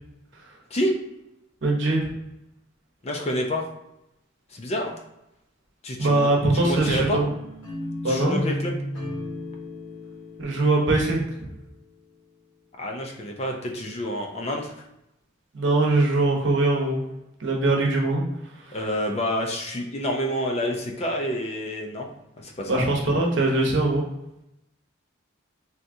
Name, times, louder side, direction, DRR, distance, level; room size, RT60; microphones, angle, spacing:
voice 1, 1.6-2.1 6.0-7.2 8.0-8.4 10.4-11.3 15.5-17.0 17.4-18.2 22.7-24.0, right 2 dB, 65° right, -1 dB, 0.8 m, -22 dB
voice 2, 3.0-3.6 4.5-4.9 5.8-6.2 6.5-7.2 8.0-8.8 12.8-14.7 18.7-22.1 22.4-22.9, equal, 30° left, 2 dB, 0.4 m, -28 dB
sound 1, 7.0-12.1, left 1 dB, 80° left, 1.2 m, -35 dB
3.5 x 2.7 x 2.6 m, 0.84 s
head